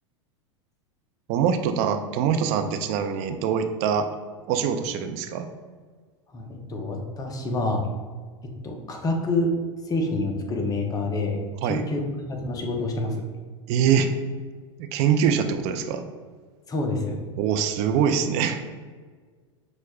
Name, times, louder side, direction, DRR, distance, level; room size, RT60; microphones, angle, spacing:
voice 1, 1.3-4.1 4.5-5.5 11.6-11.9 13.7-14.1 14.8-16.0 17.4-18.6, right 7 dB, 45° right, 7 dB, 0.4 m, -23 dB
voice 2, 6.3-7.8 8.6-9.5 9.9-13.2 16.7-17.2, left 2 dB, 25° left, 2 dB, 0.6 m, -27 dB
5.9 x 2.1 x 2.3 m, 1.5 s
hypercardioid pair, 95°, 15 cm